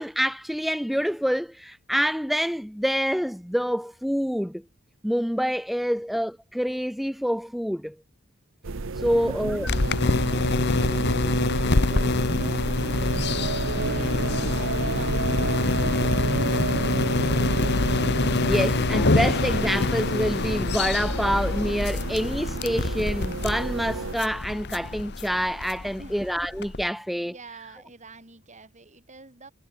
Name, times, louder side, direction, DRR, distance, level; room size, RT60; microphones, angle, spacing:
voice 1, 0.0-4.6 5.0-7.9 9.0-9.7 18.4-27.3, equal, ahead, 2.2 m, -27 dB
sound 1, 8.6-24.1, right 3 dB, 65° right, 0.9 m, -31 dB
voice 2, 8.8-16.6 17.4-18.0 26.0-26.2 27.3-29.5, right 3 dB, 35° right, 7.8 m, -48 dB
sound 2, 9.7-26.9, left 2 dB, 55° left, 1.2 m, -25 dB
head